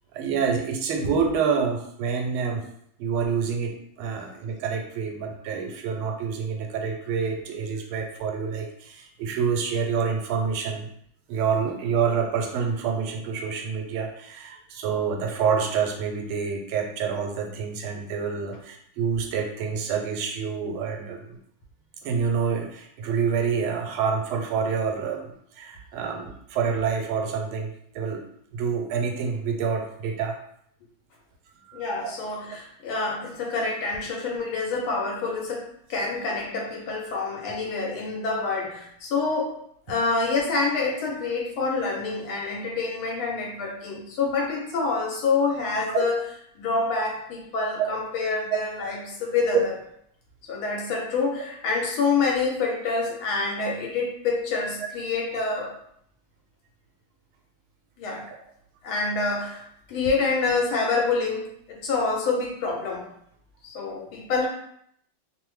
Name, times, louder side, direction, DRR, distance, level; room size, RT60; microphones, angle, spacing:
voice 1, 0.1-2.6 3.0-10.9 11.3-21.4 22.0-27.7 27.9-28.2 28.5-30.4 31.7-32.1 45.9-46.0 47.8-47.9 58.3-58.4 60.9-61.0, right 6 dB, 85° right, 3 dB, 1.4 m, -27 dB
voice 2, 31.7-35.6 35.9-39.6 39.9-46.2 46.5-49.7 50.5-55.7 58.0-58.3 58.8-59.6 59.9-63.0 63.6-64.5, left 4 dB, 80° left, -1 dB, 1.6 m, -27 dB
3.6 x 2.0 x 3.1 m, 0.69 s
omnidirectional pair, 2.2 m